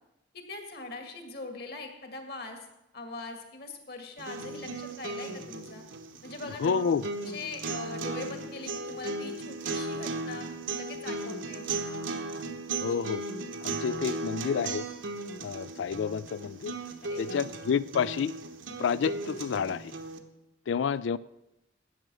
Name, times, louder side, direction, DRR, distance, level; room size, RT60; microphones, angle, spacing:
voice 1, 0.3-2.7 2.9-5.9 6.2-6.7 7.2-11.7 17.0-17.5, left 3 dB, 50° left, 5 dB, 1.9 m, -42 dB
sound 1, 4.2-20.2, right 3 dB, 80° right, 1.2 m, -36 dB
voice 2, 6.6-7.0 12.8-13.2 13.6-14.8 15.4-16.8 17.2-18.3 18.8-19.9 20.7-21.2, left 6 dB, 70° left, 19 dB, 0.3 m, -29 dB
13.5 x 9.1 x 6.1 m, 0.92 s
head